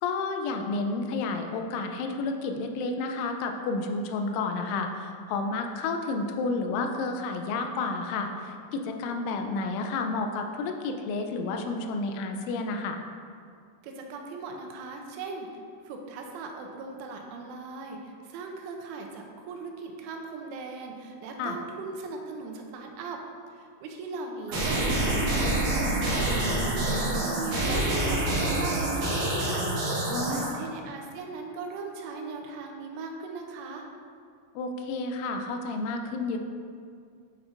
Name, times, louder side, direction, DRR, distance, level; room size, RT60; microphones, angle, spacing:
voice 1, 0.0-13.0 21.4-21.6 30.1-30.6 34.6-36.4, left 3 dB, 85° left, 4 dB, 3.0 m, -31 dB
voice 2, 13.8-23.2 23.5-29.9 30.3-33.9, right 4 dB, 90° right, 2 dB, 3.2 m, -39 dB
sound 1, 24.5-30.5, right 1 dB, 60° right, 2.4 m, -27 dB
9.5 x 6.1 x 2.5 m, 2.3 s
omnidirectional pair, 5.4 m